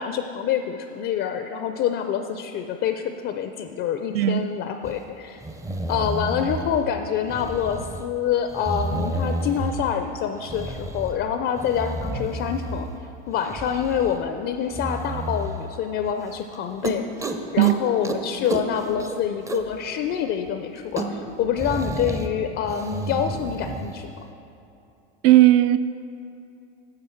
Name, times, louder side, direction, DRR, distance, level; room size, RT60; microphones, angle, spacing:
voice 1, 0.0-5.4 5.9-12.9 13.3-17.0 17.5-24.2, left 8 dB, 40° left, 7 dB, 0.4 m, -26 dB
sound 1, 4.8-4.9 5.4-6.8 7.3-8.0 8.5-9.9 10.5-11.2 11.6-13.0 13.4-14.2 14.7-15.5 16.1-16.2 16.5-16.6 16.8-17.8 18.0-18.2 18.5-19.8 20.1-20.2 20.5-20.6 20.8-22.3 22.7-23.9, right 1 dB, 10° right, 0.5 m, -31 dB
voice 2, 25.2-25.8, right 15 dB, 60° right, 14 dB, 0.4 m, -16 dB
9.6 x 6.7 x 4.4 m, 2.7 s
supercardioid pair, 110°, 32 cm